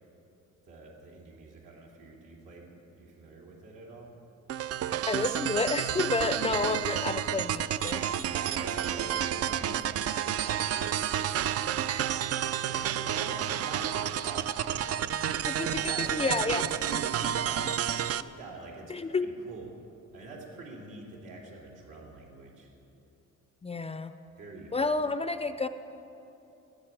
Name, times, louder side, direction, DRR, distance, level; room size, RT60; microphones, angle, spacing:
voice 1, 0.7-4.1 6.3-6.6 7.9-11.2 12.0-12.2 12.5-19.7 20.1-22.7 24.4-25.1, right 2 dB, 85° right, -3 dB, 3.3 m, -45 dB
sound 1, 4.5-18.2, right 10 dB, 55° right, 0.4 m, -30 dB
voice 2, 5.1-8.3 15.5-15.8 16.1-16.6 18.9-19.3 23.6-24.1 24.7-25.7, left 3 dB, 20° left, 11 dB, 0.4 m, -30 dB
13.5 x 10.0 x 9.0 m, 2.9 s
cardioid pair, 130°, 30 cm